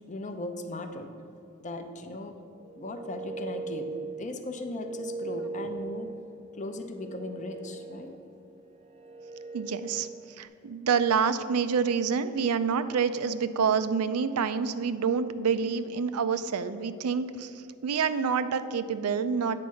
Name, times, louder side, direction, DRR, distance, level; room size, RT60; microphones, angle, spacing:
voice 1, 0.1-1.1 1.6-2.3 2.7-3.9 4.2-6.1 6.5-8.1, left 2 dB, 35° left, 6 dB, 0.6 m, -37 dB
sound 1, 2.6-10.5, right 3 dB, 25° right, 0.5 m, -40 dB
voice 2, 9.5-10.1 10.4-19.6, right 6 dB, 80° right, 13 dB, 0.4 m, -27 dB
8.5 x 4.6 x 6.3 m, 2.7 s
head